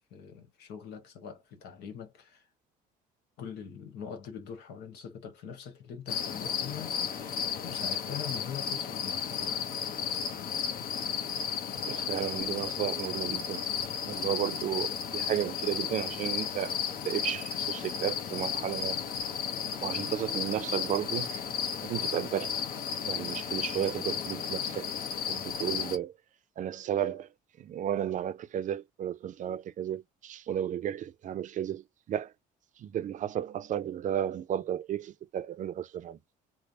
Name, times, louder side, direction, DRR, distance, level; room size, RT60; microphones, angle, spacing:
voice 1, 0.1-2.5 3.4-7.0 7.6-9.6, left 7 dB, 85° left, 1.2 m, -43 dB
sound 1, 6.1-26.0, left 7 dB, 60° left, 0.8 m, -34 dB
voice 2, 11.9-13.6 14.0-16.8 17.0-19.0 19.8-21.4 21.8-22.5 23.1-24.9 25.3-26.1 26.6-27.3 27.6-32.3 32.8-36.2, right 10 dB, 50° right, 0.5 m, -33 dB
3.2 x 2.1 x 3.9 m
cardioid pair, 110°, 17 cm